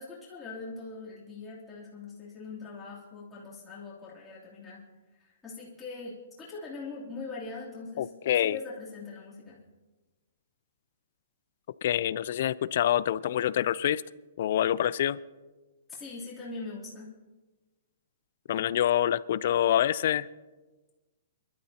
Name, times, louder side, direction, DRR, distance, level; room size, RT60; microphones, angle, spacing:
voice 1, 0.0-4.8 5.2-8.1 8.4-9.6 15.9-17.1, left 3 dB, 5° left, -9 dB, 3.1 m, -42 dB
voice 2, 8.0-8.6 11.8-14.0 14.4-15.2 18.5-20.3, left 11 dB, 45° left, 19 dB, 0.3 m, -26 dB
25.5 x 12.5 x 2.8 m, 1.2 s
hypercardioid pair, 175°, 0 cm